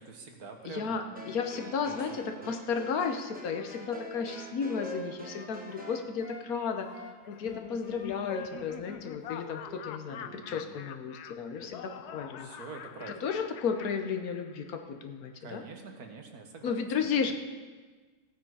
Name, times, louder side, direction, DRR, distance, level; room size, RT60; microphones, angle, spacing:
voice 1, 0.0-1.2 1.6-2.5 10.1-10.8 12.4-13.3 15.4-17.3, right 4 dB, 70° right, 3 dB, 1.8 m, -47 dB
voice 2, 0.6-6.9 7.3-12.5 13.2-15.6 16.6-17.3, left 6 dB, 70° left, 6 dB, 1.3 m, -33 dB
sound 1, 1.2-6.1, right 1 dB, 5° right, 0.9 m, -47 dB
Wind instrument woodwind instrument, 3.0-6.5 6.8-9.9 10.2-10.4, left 1 dB, 35° left, 2.9 m, -46 dB
Laughter, 7.2-14.7, left 9 dB, 85° left, 1.2 m, -45 dB
16.0 x 8.9 x 4.8 m, 1.4 s
omnidirectional pair, 1.7 m